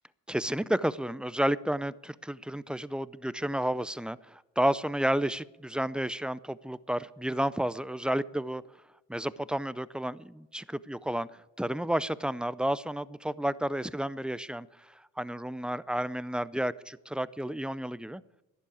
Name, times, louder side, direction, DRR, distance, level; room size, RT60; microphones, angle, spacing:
voice 1, 0.3-8.6 9.1-11.3 11.6-18.2, right 1 dB, 5° right, 0.5 m, -31 dB
11.5 x 10.5 x 8.4 m
cardioid pair, 90°, 30 cm